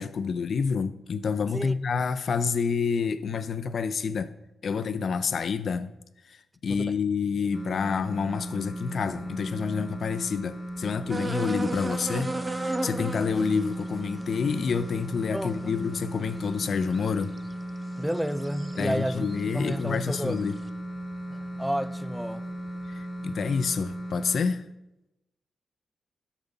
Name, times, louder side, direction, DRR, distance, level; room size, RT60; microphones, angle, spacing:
voice 1, 0.0-4.3 4.6-5.9 6.3-17.3 18.8-20.6 22.9-24.7, left 5 dB, 65° left, 0.7 m, -28 dB
sound 1, 7.5-24.4, right 1 dB, 25° left, 3.5 m, -36 dB
sound 2, 11.1-17.5 18.1-18.9 19.2-20.4, right 2 dB, 25° right, 1.0 m, -36 dB
voice 2, 18.0-19.3 19.5-20.4 21.3-22.4, equal, 5° right, 0.5 m, -31 dB
12.5 x 7.2 x 5.4 m
supercardioid pair, 50°, 0 cm